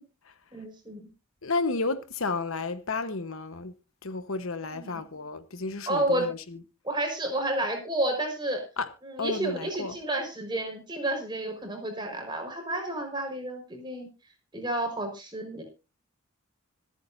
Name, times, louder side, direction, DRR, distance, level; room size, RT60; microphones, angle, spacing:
voice 1, 0.5-1.0 4.7-5.0 5.9-6.3 6.8-8.6 9.0-14.1 14.5-15.6, right 1 dB, 20° right, 4.7 m, -31 dB
voice 2, 1.4-3.7 4.0-6.6 8.8-8.9 9.2-10.0, left 3 dB, 70° left, 1.1 m, -32 dB
25.5 x 8.7 x 2.7 m
head